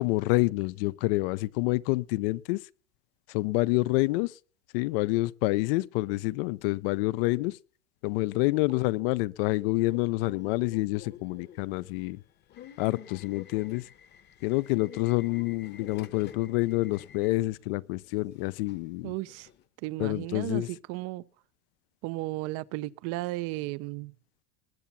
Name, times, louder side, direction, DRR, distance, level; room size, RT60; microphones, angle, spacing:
voice 1, 0.0-2.6 3.3-4.3 4.7-7.6 8.0-12.2 12.8-13.8 14.4-19.1 20.0-20.7, left 21 dB, 50° left, 0.6 m, -27 dB
Subway metro underground / Alarm, 9.8-19.6, left 10 dB, 30° left, 1.0 m, -50 dB
voice 2, 19.0-19.5 19.8-21.2 22.0-24.1, right 19 dB, 40° right, 0.6 m, -34 dB
20.0 x 7.1 x 7.0 m
supercardioid pair, 155°, 37 cm